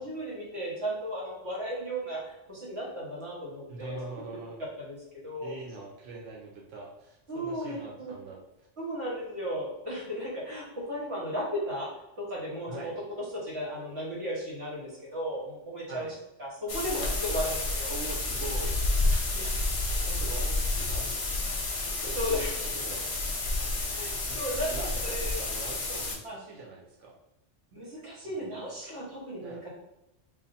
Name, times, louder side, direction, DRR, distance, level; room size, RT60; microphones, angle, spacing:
voice 1, 0.0-4.0 4.8-5.5 7.3-8.1 8.8-11.9 12.2-12.9 13.3-16.1 16.4-17.0 17.3-17.9 19.3-19.5 22.0-22.5 23.9-25.5 26.2-26.3 27.7-29.7, equal, 65° right, -5 dB, 1.4 m, -35 dB
voice 2, 3.7-4.6 5.4-8.4 12.7-12.9 15.9-16.1 17.0-17.2 17.9-18.8 20.0-22.4 22.7-23.0 24.3-27.1 28.2-28.7 29.4-29.6, right 3 dB, 85° right, -2 dB, 1.0 m, -43 dB
sound 1, 16.7-26.2, left 2 dB, 60° left, 0.3 m, -30 dB
2.5 x 2.5 x 4.0 m, 0.87 s
omnidirectional pair, 1.2 m